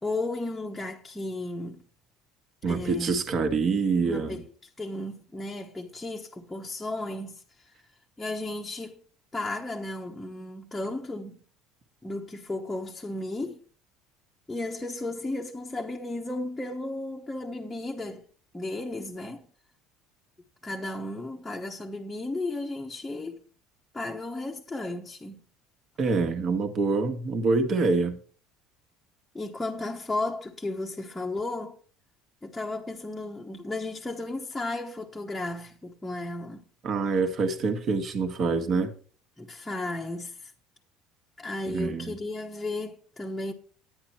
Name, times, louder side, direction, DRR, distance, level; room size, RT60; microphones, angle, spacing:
voice 1, 0.0-1.8 2.7-3.1 4.0-4.4 4.8-7.7 8.2-9.0 9.3-11.4 12.0-13.6 14.5-18.3 18.5-19.5 20.6-23.4 23.9-25.4 29.3-31.8 32.4-36.6 39.4-40.5 41.4-43.5, left 2 dB, 5° left, 1.1 m, -34 dB
voice 2, 2.6-4.4 26.0-28.2 36.8-38.9 41.7-42.2, right 4 dB, 40° right, 1.7 m, -26 dB
11.5 x 9.5 x 4.4 m
cardioid pair, 145°, 0 cm